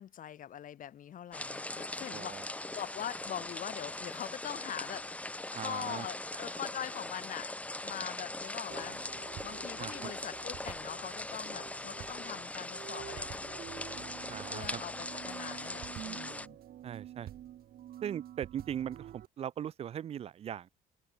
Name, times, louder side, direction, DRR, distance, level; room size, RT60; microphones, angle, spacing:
voice 1, 0.0-7.5 7.8-9.0 9.4-13.6 14.5-16.6, left 10 dB, 50° left, 1.8 m, -43 dB
sound 1, 1.3-16.5, left 2 dB, 10° left, 0.8 m, -41 dB
voice 2, 2.1-2.4 5.5-6.1 9.8-10.1 14.3-14.8 16.8-17.3 18.0-20.7, right 9 dB, 35° right, 0.4 m, -39 dB
sound 2, 8.7-19.3, right 12 dB, 60° right, 3.2 m, -48 dB
cardioid pair, 110°, 17 cm